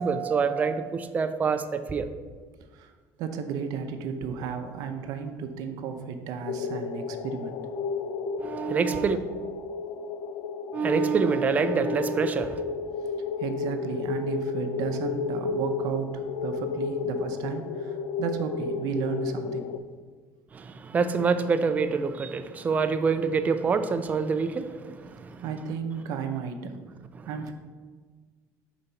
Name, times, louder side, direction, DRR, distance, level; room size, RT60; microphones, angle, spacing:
voice 1, 0.0-2.1 8.4-9.2 10.7-12.6 20.5-25.4 27.2-27.3, right 5 dB, 25° right, 10 dB, 0.4 m, -26 dB
voice 2, 3.2-7.6 13.4-19.7 25.4-26.7 27.2-27.5, right 6 dB, 70° right, 6 dB, 0.6 m, -33 dB
sound 1, 6.5-19.8, left 5 dB, 70° left, 0.3 m, -32 dB
5.1 x 4.0 x 5.6 m, 1.5 s
cardioid pair, 145°, 7 cm